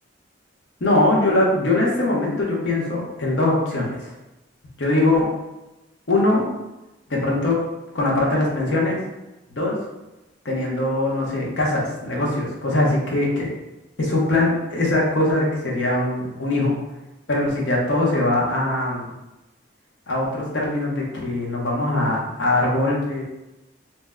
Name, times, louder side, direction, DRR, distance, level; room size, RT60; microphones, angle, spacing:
voice 1, 0.8-4.1 4.8-5.3 6.1-6.5 7.1-7.6 7.9-9.0 9.5-9.7 10.4-13.5 14.0-16.7 17.3-19.1 20.1-23.2, left 2 dB, 70° left, -3 dB, 0.8 m, -21 dB
2.7 x 2.1 x 3.5 m, 1.0 s
head